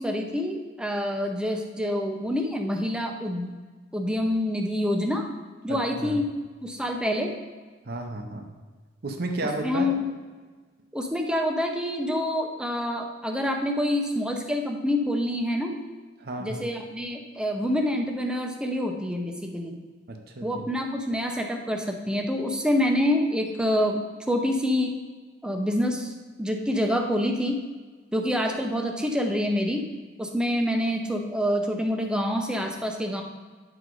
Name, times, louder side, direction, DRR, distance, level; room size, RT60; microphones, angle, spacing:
voice 1, 0.0-3.5 3.9-5.2 5.6-6.2 6.6-7.3 9.4-10.1 10.9-15.8 16.4-19.7 20.4-24.0 24.3-24.9 25.4-26.1 26.4-27.6 28.1-29.9 30.2-33.2, left 1 dB, 5° right, 3 dB, 0.7 m, -26 dB
voice 2, 5.7-6.2 7.8-8.5 9.0-9.9 16.2-16.7 20.1-20.7, right 2 dB, 55° right, 4 dB, 0.8 m, -33 dB
9.5 x 4.8 x 3.9 m, 1.4 s
head